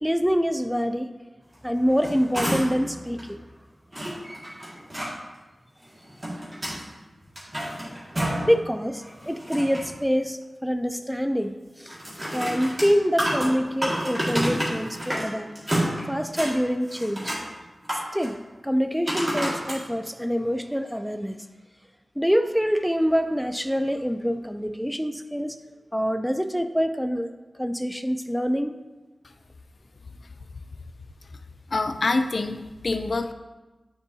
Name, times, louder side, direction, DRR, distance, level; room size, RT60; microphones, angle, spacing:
voice 1, 0.0-1.1 1.6-3.5 4.2-4.7 8.5-12.0 12.3-15.5 16.1-17.4 18.1-18.4 18.6-21.4 22.2-25.6 25.9-27.3 27.6-28.8, equal, ahead, 7 dB, 0.4 m, -25 dB
sound 1, 1.8-2.9 3.2-3.3 3.9-5.1 5.9-6.8 7.2-8.6 8.9-10.0 11.9-15.3 15.6-16.5 16.9-17.5 17.8-18.3 19.1-19.8 20.4-20.5, equal, 25° right, 2.0 m, -29 dB
voice 2, 31.7-33.3, left 3 dB, 60° left, 8 dB, 0.4 m, -26 dB
9.5 x 4.5 x 2.7 m, 1.2 s
wide cardioid pair, 85°, 0 cm